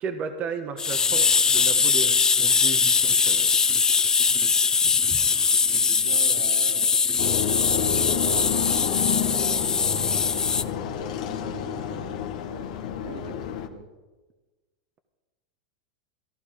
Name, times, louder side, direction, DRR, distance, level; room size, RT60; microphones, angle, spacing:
voice 1, 0.0-3.5, right 5 dB, 35° right, 7 dB, 1.3 m, -34 dB
sound 1, 0.8-10.6, left 5 dB, 15° left, 0.6 m, -21 dB
voice 2, 5.6-7.0 7.3-10.0 10.6-12.7 13.0-13.9, right 4 dB, 85° right, 1 dB, 2.9 m, -42 dB
sound 2, 7.2-13.7, left 9 dB, 70° left, 1.4 m, -29 dB
15.0 x 12.0 x 5.2 m, 1.2 s
hypercardioid pair, 115°, 4 cm